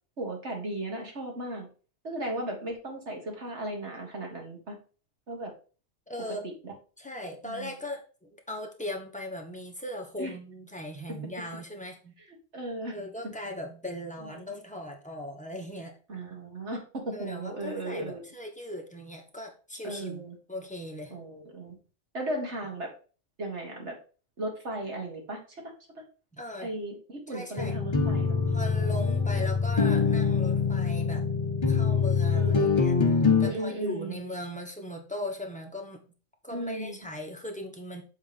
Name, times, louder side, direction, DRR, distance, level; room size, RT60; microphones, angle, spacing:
voice 1, 0.2-1.7 2.0-4.8 5.3-5.5 6.4-6.7 7.4-7.7 10.2-10.3 12.5-13.0 13.2-13.3 14.2-14.3 16.1-18.3 19.8-20.4 21.1-21.8 22.1-22.9 23.4-23.9 24.4-25.4 26.6-29.5 32.3-32.7 33.4-34.2 36.5-37.0, right 1 dB, 65° right, 1 dB, 2.2 m, -36 dB
voice 2, 6.1-6.5 7.0-12.1 12.9-16.0 17.1-21.1 26.3-26.7 27.3-27.8 28.5-31.3 31.7-36.0 36.4-38.0, left 1 dB, 5° left, 1 dB, 1.2 m, -39 dB
sound 1, 27.6-33.5, left 5 dB, 30° left, 0.6 m, -24 dB
7.5 x 3.7 x 5.1 m, 0.37 s
omnidirectional pair, 1.2 m